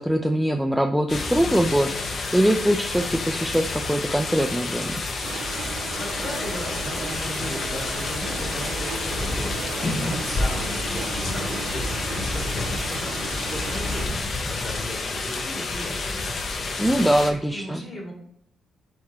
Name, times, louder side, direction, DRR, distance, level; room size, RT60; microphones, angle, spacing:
voice 1, 0.0-5.0 16.8-17.8, equal, ahead, 3 dB, 0.3 m, -22 dB
sound 1, 1.1-17.3, left 3 dB, 45° left, 0.6 m, -29 dB
sound 2, 5.2-14.1, right 5 dB, 80° right, 0.6 m, -36 dB
voice 2, 6.0-16.2 16.9-18.1, equal, 30° left, -1 dB, 1.7 m, -37 dB
3.8 x 3.1 x 4.4 m, 0.72 s
cardioid pair, 90°, 0 cm